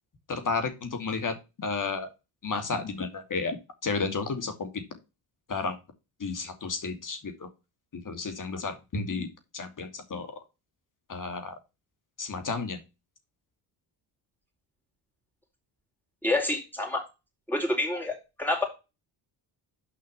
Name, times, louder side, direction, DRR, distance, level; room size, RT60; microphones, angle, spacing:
voice 1, 0.3-2.1 2.4-3.6 3.8-4.8 5.5-5.8 6.2-7.5 7.9-9.3 9.5-10.3 11.1-11.6 12.2-12.8, left 4 dB, 40° left, 8 dB, 2.6 m, -32 dB
voice 2, 16.2-17.0 17.5-18.6, left 2 dB, 5° left, 0 dB, 4.6 m, -28 dB
6.7 x 5.5 x 6.8 m, 0.27 s
supercardioid pair, 70°, 50 cm